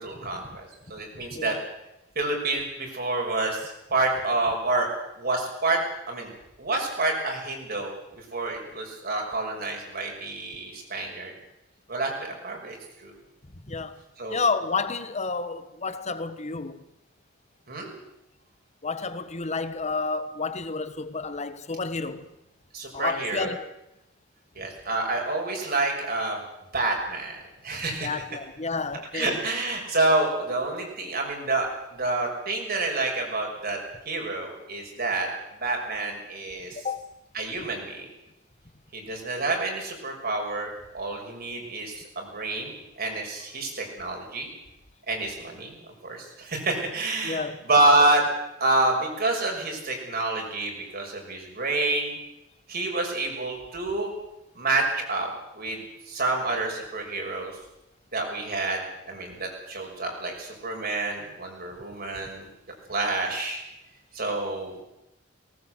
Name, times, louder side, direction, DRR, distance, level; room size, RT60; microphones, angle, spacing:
voice 1, 0.0-1.5 2.2-4.9 5.2-5.8 6.1-6.3 6.6-7.9 8.3-11.3 11.9-13.1 14.2-14.4 17.7-17.9 22.7-23.5 24.6-26.4 26.7-28.1 29.1-31.7 31.9-33.8 34.1-35.3 35.6-36.8 37.3-38.1 38.9-42.7 43.0-44.5 45.1-45.8 46.0-48.2 48.6-52.2 52.7-54.1 54.5-57.5 58.1-62.5 62.9-63.6 64.1-64.8, right 2 dB, 50° right, 6.1 m, -28 dB
voice 2, 1.3-1.6 13.7-14.0 14.3-16.8 18.8-22.2 22.9-23.7 28.0-29.4 36.8-37.1 47.2-47.6, left 4 dB, 35° left, 1.4 m, -30 dB
19.5 x 19.0 x 8.1 m
head